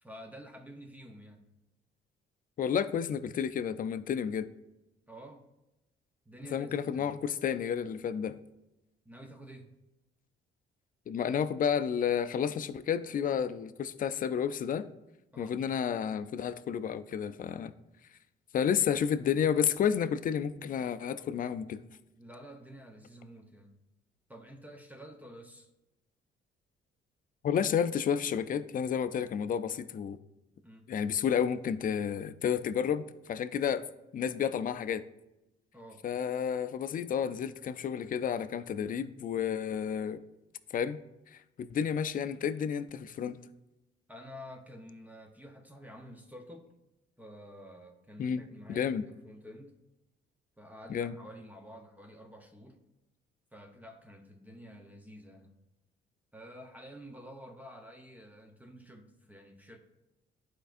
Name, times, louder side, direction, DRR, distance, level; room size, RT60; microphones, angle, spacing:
voice 1, 0.0-1.5 5.1-5.5 6.3-7.2 9.1-9.7 15.3-15.6 22.2-23.8 24.3-25.7 30.6-30.9 35.7-36.0 44.1-46.7 47.2-49.8 50.6-52.8 53.5-55.6 56.3-59.8, equal, 10° right, 4 dB, 0.7 m, -50 dB
voice 2, 2.6-4.5 6.5-8.4 11.1-14.9 15.4-17.7 18.5-21.8 27.4-30.2 30.9-33.8 34.1-35.0 36.0-40.2 40.7-41.0 41.3-43.4 48.2-48.4 48.7-49.0 50.9-51.1, left 8 dB, 45° left, 13 dB, 0.4 m, -31 dB
11.5 x 4.5 x 2.5 m, 0.93 s
cardioid pair, 90°, 20 cm